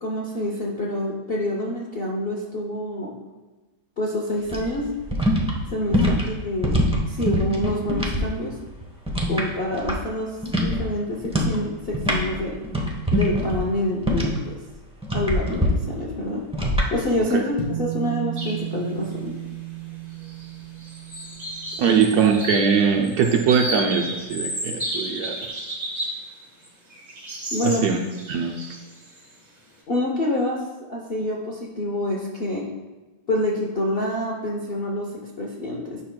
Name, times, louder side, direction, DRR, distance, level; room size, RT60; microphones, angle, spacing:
voice 1, 0.0-3.2 4.0-4.9 5.7-6.8 7.1-8.6 9.3-12.6 13.1-14.6 15.1-16.5 16.9-19.4 21.8-22.3 27.5-27.9 29.9-32.7 33.3-36.0, left 1 dB, 60° left, -2 dB, 0.6 m, -27 dB
sound 1, 4.5-8.3 8.5-10.2 10.4-10.8 11.2-11.6 11.9-14.5 15.0-15.7 16.5-16.9, equal, 10° right, 0.3 m, -23 dB
sound 2, 17.6-24.2, right 10 dB, 90° left, 2.4 m, -35 dB
sound 3, 18.4-18.7 19.0-19.1 20.1-20.5 20.8-26.3 26.6-29.3, right 1 dB, 35° right, 2.1 m, -33 dB
voice 2, 21.8-25.7 27.6-28.0 28.3-28.8, right 6 dB, 70° right, 2 dB, 1.0 m, -21 dB
10.0 x 5.8 x 2.2 m, 1.2 s
omnidirectional pair, 2.0 m